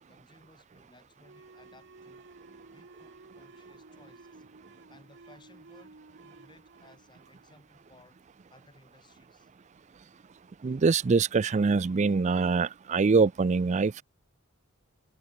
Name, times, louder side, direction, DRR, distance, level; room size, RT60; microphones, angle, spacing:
voice 1, 0.1-2.3 2.7-4.4 4.9-9.5 10.7-10.8, left 2 dB, 20° left, 4.9 m, -60 dB
sound 1, 1.2-8.4, right 3 dB, 55° right, 1.0 m, -54 dB
voice 2, 10.6-14.0, right 4 dB, 35° right, 0.4 m, -24 dB
head